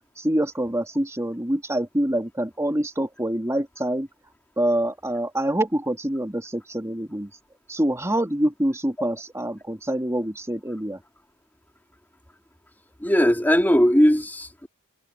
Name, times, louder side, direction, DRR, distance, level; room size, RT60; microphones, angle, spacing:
voice 1, 0.2-4.1 4.6-7.3 7.7-11.0, right 1 dB, 15° right, 2.9 m, -25 dB
voice 2, 13.0-14.7, equal, 10° left, 2.7 m, -19 dB
head